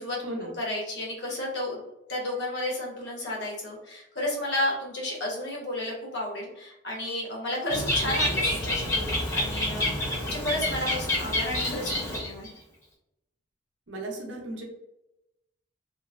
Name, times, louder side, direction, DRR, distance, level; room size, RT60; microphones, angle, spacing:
voice 1, 0.0-1.8 2.1-12.5, left 1 dB, 65° left, -2 dB, 1.0 m, -32 dB
Bird, 7.7-12.5, left 1 dB, 15° left, 0.6 m, -28 dB
voice 2, 8.0-8.3 13.9-14.6, right 1 dB, 80° right, 0 dB, 0.7 m, -36 dB
2.9 x 2.0 x 2.4 m, 0.88 s
head